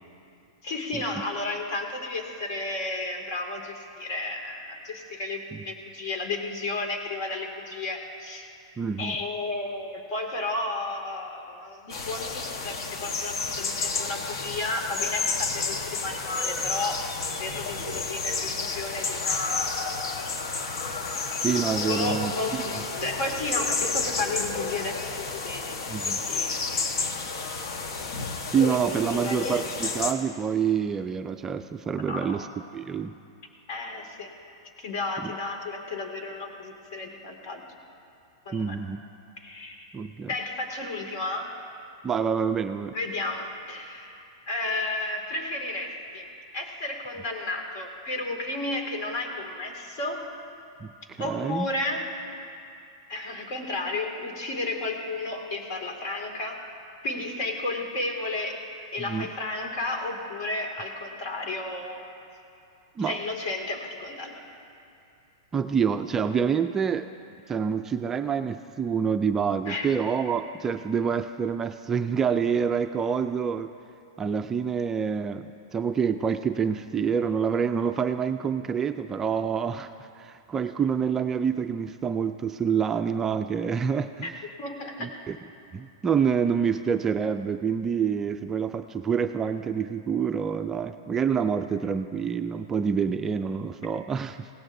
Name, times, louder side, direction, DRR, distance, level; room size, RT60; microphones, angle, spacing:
voice 1, 0.6-8.5 9.0-17.0 17.4-19.7 20.1-20.2 21.9-25.8 26.0-27.1 28.0-28.1 29.1-29.9 32.1-32.4 33.7-34.3 34.8-37.6 38.5-38.8 39.4-39.9 40.3-41.5 42.9-46.3 46.5-50.2 51.2-52.1 53.1-56.6 57.0-58.7 58.9-62.0 63.0-64.4 69.7-69.9 84.2-84.3 84.6-85.1, left 2 dB, 55° left, 2 dB, 2.2 m, -33 dB
voice 2, 8.8-9.2 21.4-22.6 25.9-26.2 28.5-32.5 32.7-33.2 35.2-35.3 38.5-39.0 39.9-40.3 42.0-43.0 50.8-51.7 59.0-59.3 63.0-63.2 65.5-67.1 67.5-73.7 74.2-84.3 85.0-85.4 85.7-94.5, right 6 dB, 15° right, 7 dB, 0.3 m, -27 dB
sound 1, 11.9-30.1, left 4 dB, 70° left, 1.2 m, -31 dB
20.5 x 17.0 x 2.7 m, 2.6 s
hypercardioid pair, 140°, 2 cm